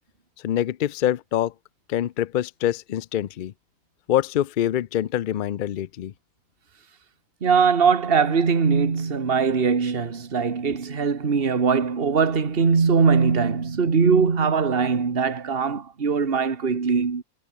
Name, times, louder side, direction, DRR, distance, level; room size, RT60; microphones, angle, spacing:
voice 1, 0.4-1.5 1.9-3.5 4.1-6.1, left 11 dB, 85° left, 0.4 m, -25 dB
voice 2, 7.4-17.2, right 5 dB, 40° right, 1.9 m, -21 dB
omnidirectional pair, 1.6 m